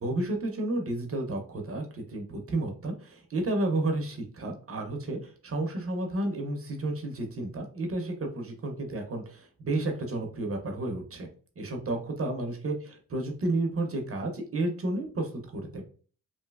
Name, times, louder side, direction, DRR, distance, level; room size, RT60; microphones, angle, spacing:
voice 1, 0.0-11.3 11.6-15.8, right 2 dB, 40° right, 3 dB, 0.7 m, -31 dB
3.1 x 2.6 x 2.3 m, 0.40 s
cardioid pair, 115°, 35 cm